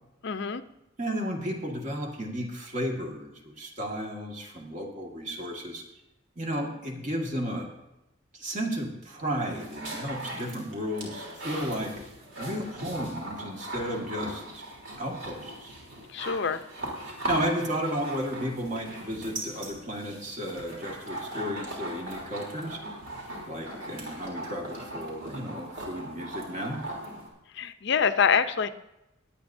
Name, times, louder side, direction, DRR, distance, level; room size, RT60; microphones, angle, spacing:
voice 1, 0.2-0.6 16.1-16.6 27.5-28.7, left 6 dB, 60° left, 11 dB, 0.6 m, -25 dB
voice 2, 1.0-5.8 6.4-7.7 8.3-12.0 12.4-14.7 15.0-15.7 17.0-22.8 23.5-26.8, equal, 40° right, 1 dB, 1.8 m, -33 dB
sound 1, 9.2-27.3, right 1 dB, 70° right, 3.3 m, -39 dB
21.0 x 8.9 x 2.7 m, 0.90 s
head